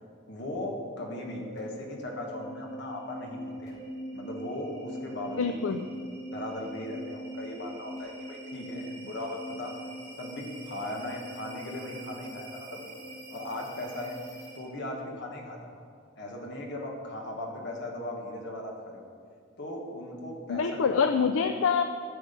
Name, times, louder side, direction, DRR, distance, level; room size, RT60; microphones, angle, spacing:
voice 1, 0.3-3.8 4.1-5.8 6.3-9.8 10.2-13.0 13.3-14.2 14.5-15.8 16.2-19.1 19.6-21.0, left 1 dB, 60° left, 0 dB, 1.7 m, -38 dB
sound 1, 1.2-14.8, equal, 20° left, 2.8 m, -42 dB
voice 2, 5.4-5.9 20.5-21.8, left 6 dB, 90° left, 7 dB, 0.4 m, -25 dB
13.0 x 6.2 x 5.2 m, 2.2 s
head